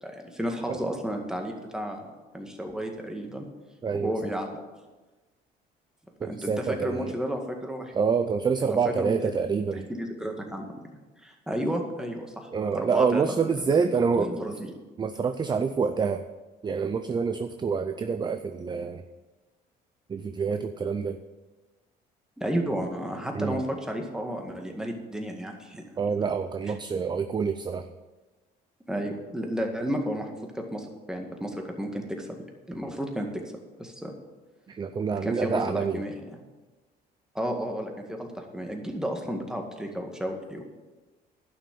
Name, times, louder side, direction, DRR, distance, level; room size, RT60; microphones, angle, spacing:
voice 1, 0.0-2.1 2.3-3.5 3.9-4.6 6.2-7.9 8.6-9.3 9.9-10.7 11.2-13.8 14.2-14.7 22.4-26.0 28.9-32.3 32.7-33.3 33.8-34.1 35.2-35.6 35.9-36.1 37.3-40.6, equal, 5° right, 2 dB, 2.0 m, -32 dB
voice 2, 3.8-4.1 6.2-7.2 7.9-9.9 12.5-14.4 15.0-16.3 16.6-19.0 20.1-21.2 23.3-23.6 26.0-27.9 34.7-36.0, right 5 dB, 25° right, 9 dB, 0.5 m, -27 dB
11.0 x 6.3 x 8.5 m, 1.2 s
cardioid pair, 110°, 17 cm